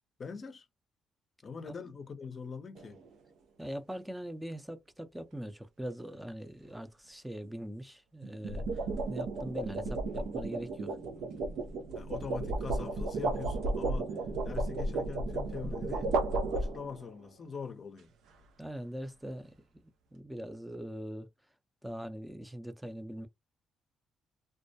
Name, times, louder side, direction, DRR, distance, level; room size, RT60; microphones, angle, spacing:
voice 1, 0.2-0.7 1.4-3.0 11.9-14.1 14.4-16.1 16.5-18.1, left 5 dB, 45° left, 0.6 m, -43 dB
sound 1, 2.8-3.1 8.2-17.1, right 2 dB, 80° right, 0.5 m, -34 dB
voice 2, 3.6-8.8 9.1-11.0 14.3-14.4 18.6-19.5 19.8-21.3 21.8-23.3, equal, 5° right, 0.5 m, -42 dB
2.2 x 2.1 x 2.6 m
cardioid pair, 90°, 0 cm